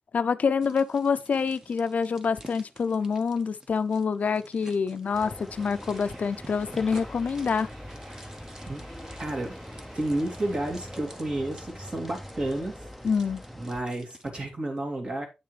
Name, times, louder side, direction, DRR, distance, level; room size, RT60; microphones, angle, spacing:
voice 1, 0.1-7.7 13.0-13.4, left 5 dB, 70° left, 0.5 m, -26 dB
sound 1, 0.6-14.3, right 1 dB, 20° right, 1.2 m, -51 dB
sound 2, 5.1-13.8, equal, ahead, 0.6 m, -43 dB
sound 3, 5.6-11.3, right 1 dB, 60° right, 3.6 m, -53 dB
voice 2, 8.7-9.6 9.9-12.7 13.5-15.3, right 1 dB, 40° right, 2.6 m, -31 dB
8.8 x 6.6 x 3.2 m
wide cardioid pair, 115°, 3 cm